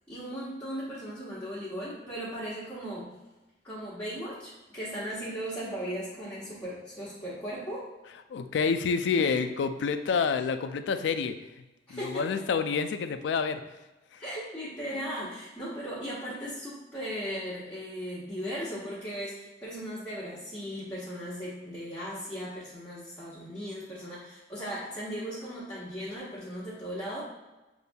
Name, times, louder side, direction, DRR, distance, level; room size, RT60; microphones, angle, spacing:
voice 1, 0.1-3.1 3.6-7.9 9.2-9.3 10.2-10.3 11.9-12.4 14.2-27.2, equal, 15° left, -10 dB, 1.0 m, -37 dB
voice 2, 8.3-11.4 11.9-13.6 14.1-14.2, left 5 dB, 75° left, 9 dB, 0.3 m, -28 dB
6.6 x 2.6 x 2.2 m, 1.1 s
head